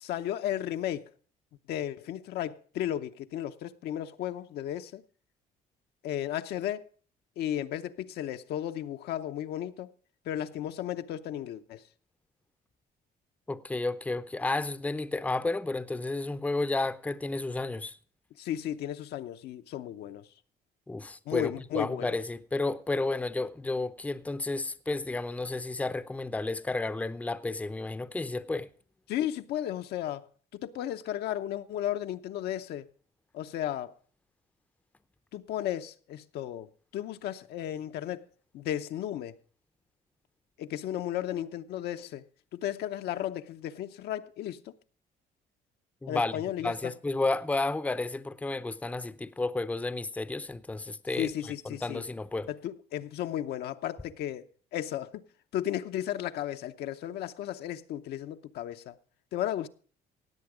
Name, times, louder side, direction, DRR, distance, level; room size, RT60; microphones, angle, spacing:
voice 1, 0.0-1.1 1.7-5.0 6.0-6.9 7.4-9.9 10.3-11.8 18.4-20.3 21.3-22.2 29.1-30.3 30.5-32.9 33.3-33.9 35.3-36.7 36.9-38.2 38.5-39.4 40.6-42.2 42.5-44.7 46.1-46.9 51.2-52.0 52.5-54.5 54.7-55.2 55.5-59.0 59.3-59.7, left 11 dB, 75° left, 0.8 m, -34 dB
voice 2, 13.5-17.9 20.9-28.7 46.0-46.3 46.6-51.5 51.8-52.5, left 2 dB, 10° left, 0.6 m, -32 dB
17.5 x 8.0 x 4.9 m
cardioid pair, 110°, 17 cm